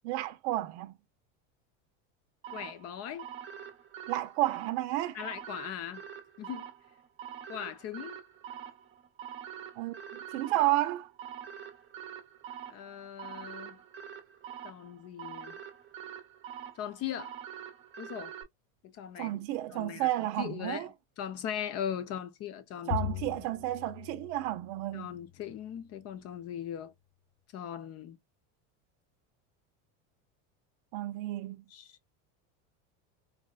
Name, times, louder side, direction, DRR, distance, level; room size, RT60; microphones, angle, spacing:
voice 1, 0.0-1.0 4.1-5.2 9.8-10.0 10.3-11.1 19.2-20.9 22.9-25.1 30.9-31.6, right 16 dB, 70° right, 0.6 m, -31 dB
sound 1, 2.4-18.4, right 9 dB, 35° right, 0.7 m, -45 dB
voice 2, 2.5-3.3 5.1-6.0 6.4-6.7 7.5-8.2 12.7-13.8 14.6-15.6 16.8-17.3 18.0-18.3 18.8-19.4 19.7-20.9 21.2-23.0 24.9-26.9 27.5-28.2 31.7-31.9, left 9 dB, 40° left, 0.8 m, -39 dB
Bowed string instrument, 22.9-25.4, left 10 dB, 15° left, 0.4 m, -39 dB
4.2 x 2.1 x 2.2 m
supercardioid pair, 130°, 36 cm